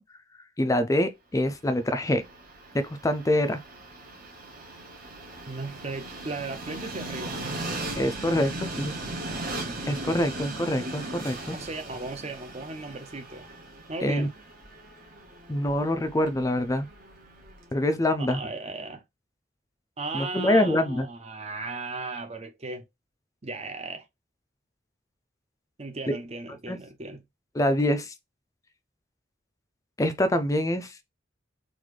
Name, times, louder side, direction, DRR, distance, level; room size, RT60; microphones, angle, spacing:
voice 1, 0.6-2.2 2.7-3.6 8.0-8.9 9.9-11.6 14.0-14.3 15.5-16.9 17.7-18.4 20.1-21.1 26.1-26.2 26.7-26.8 27.5-28.1 30.0-30.9, left 1 dB, 20° left, 0.4 m, -25 dB
Train, 1.7-17.8, right 2 dB, 50° right, 1.1 m, -38 dB
voice 2, 5.5-7.4 11.5-13.5 13.9-14.3 18.2-19.0 20.0-22.8 23.4-24.1 25.8-27.2, right 3 dB, 35° right, 0.7 m, -36 dB
3.9 x 2.5 x 3.2 m
head